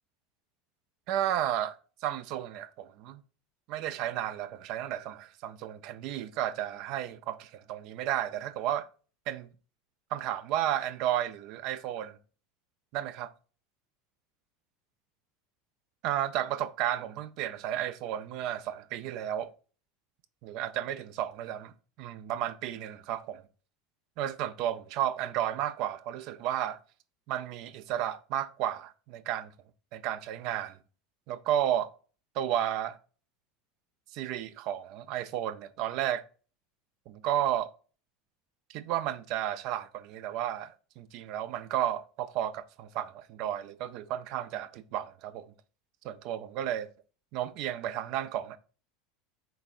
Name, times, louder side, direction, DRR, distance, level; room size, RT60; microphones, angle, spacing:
voice 1, 1.1-3.2 3.7-8.9 9.3-9.5 10.1-12.2 12.9-13.3 16.0-19.5 20.4-21.7 22.0-23.4 24.2-26.8 27.3-29.5 29.9-30.8 31.3-31.9 32.3-33.0 34.1-36.2 37.1-37.7 38.7-45.5 46.0-46.9 47.3-48.6, right 11 dB, 55° right, 0.4 m, -33 dB
3.9 x 3.5 x 2.4 m
hypercardioid pair, 80°, 0 cm